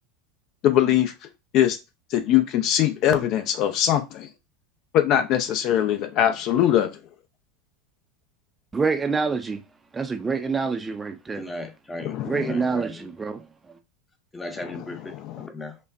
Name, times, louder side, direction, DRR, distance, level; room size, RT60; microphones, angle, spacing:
voice 1, 0.6-1.1 1.5-1.8 2.1-4.3 4.9-7.0 12.0-12.4 15.3-15.5, left 11 dB, 50° left, 0.6 m, -21 dB
voice 2, 8.7-9.6 9.9-11.4 12.3-13.4, right 4 dB, 20° right, 0.5 m, -26 dB
voice 3, 11.3-13.1 14.3-15.8, left 2 dB, 15° left, 0.8 m, -36 dB
5.3 x 2.2 x 2.5 m
hypercardioid pair, 85°, 0 cm